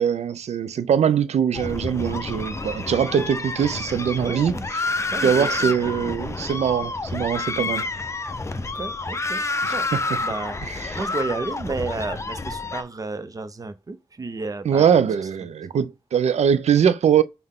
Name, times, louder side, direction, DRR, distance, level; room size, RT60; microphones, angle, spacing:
voice 1, 0.0-4.8 5.2-7.9 9.6-10.0 10.8-11.0 14.7-17.2, right 8 dB, 85° right, 0.4 m, -22 dB
sound 1, 1.5-12.8, left 3 dB, 25° left, 0.5 m, -29 dB
voice 2, 4.2-4.6 5.1-5.7 7.6-7.7 8.6-9.9 10.2-15.0, right 3 dB, 35° right, 0.6 m, -32 dB
5.6 x 2.1 x 3.6 m
wide cardioid pair, 120°, 11 cm